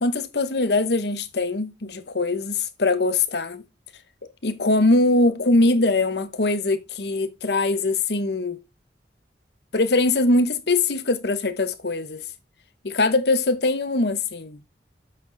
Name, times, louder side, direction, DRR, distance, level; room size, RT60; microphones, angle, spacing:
voice 1, 0.0-3.6 4.4-8.6 9.7-12.2 12.8-14.6, left 2 dB, 70° left, 1.0 m, -22 dB
7.9 x 6.2 x 3.9 m
head